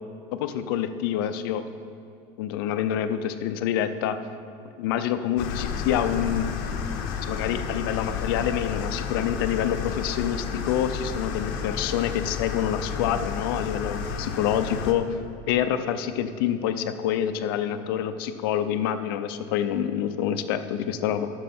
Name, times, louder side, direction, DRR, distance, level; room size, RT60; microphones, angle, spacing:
voice 1, 0.3-1.6 2.4-4.2 4.8-6.5 7.3-15.2 15.5-21.3, left 10 dB, 85° left, 10 dB, 0.6 m, -27 dB
sound 1, 5.4-14.9, left 6 dB, 65° left, 0.9 m, -31 dB
13.0 x 6.4 x 4.4 m, 2.4 s
cardioid pair, 175°, 12 cm